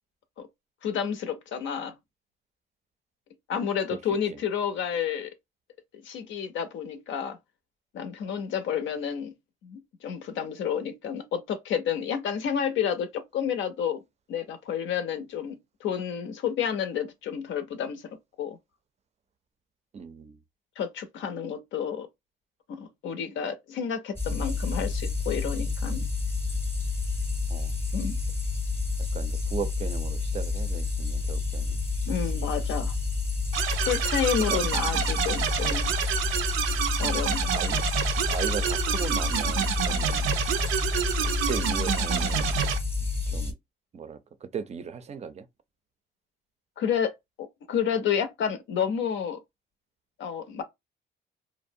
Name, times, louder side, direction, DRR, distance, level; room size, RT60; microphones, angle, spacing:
voice 1, 0.8-2.0 3.5-5.3 6.0-7.4 7.9-9.3 9.6-14.0 14.3-18.6 20.8-22.1 22.7-26.1 27.9-28.2 32.1-32.9 33.8-35.9 37.0-37.5 46.8-49.4 50.2-50.6, left 8 dB, 75° left, 0.5 m, -30 dB
voice 2, 19.9-20.4 27.5-27.7 29.1-31.8 34.4-34.6 34.9-35.1 37.5-37.8 38.3-40.3 41.2-42.5 43.3-43.5 43.9-45.5, right 6 dB, 35° right, 0.4 m, -37 dB
sound 1, 24.2-43.5, left 4 dB, 10° left, 0.7 m, -29 dB
sound 2, 33.5-42.8, right 9 dB, 90° right, 0.4 m, -28 dB
2.6 x 2.0 x 2.6 m
cardioid pair, 90°, 20 cm